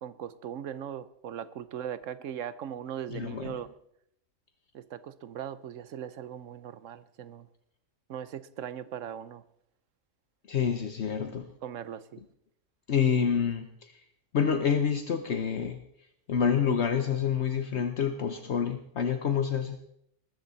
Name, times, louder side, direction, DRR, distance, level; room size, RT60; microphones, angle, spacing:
voice 1, 0.0-3.7 4.7-7.5 8.1-9.4 11.6-12.2, right 9 dB, 85° right, 16 dB, 1.1 m, -39 dB
voice 2, 3.1-3.5 10.5-11.5 12.9-13.7 14.3-15.8 16.3-19.8, left 7 dB, 65° left, 8 dB, 1.2 m, -27 dB
21.0 x 13.5 x 4.1 m, 0.74 s
omnidirectional pair, 1.3 m